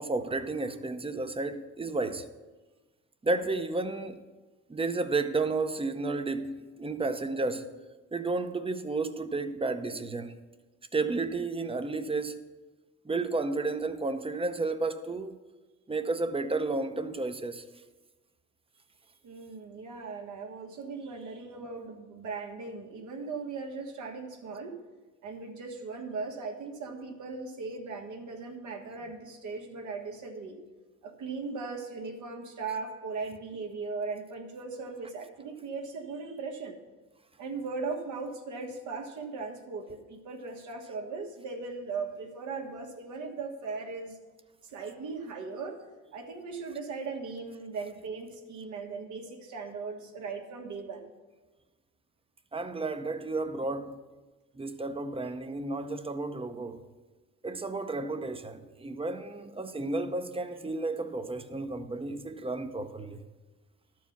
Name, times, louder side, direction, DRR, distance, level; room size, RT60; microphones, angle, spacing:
voice 1, 0.0-2.2 3.2-4.2 4.7-7.7 8.1-10.3 10.9-12.4 13.0-15.4 15.9-17.6 32.7-32.8 52.5-53.9 54.5-56.8 57.4-63.2, right 3 dB, 20° right, 0.7 m, -32 dB
voice 2, 19.2-24.8 25.2-30.6 31.0-36.8 37.4-44.2 44.6-45.9 46.1-51.1, right 4 dB, 75° right, 1.5 m, -38 dB
12.0 x 4.6 x 7.1 m
cardioid pair, 90°, 30 cm